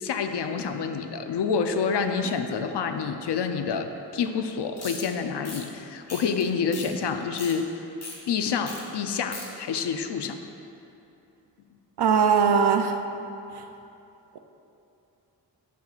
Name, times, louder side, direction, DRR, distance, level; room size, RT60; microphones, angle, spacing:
voice 1, 0.0-7.8 8.3-10.4, left 6 dB, 75° left, 7 dB, 0.6 m, -28 dB
sound 1, 4.8-5.0 5.4-5.6 6.1-6.4 6.7-6.9 7.2-7.5 8.0-8.2 8.6-8.8 9.1-9.5, left 2 dB, 40° left, 1.6 m, -38 dB
voice 2, 12.0-13.0 13.5-13.6, right 6 dB, 70° right, 7 dB, 0.6 m, -20 dB
11.0 x 7.5 x 2.4 m, 2.8 s
wide cardioid pair, 105°, 41 cm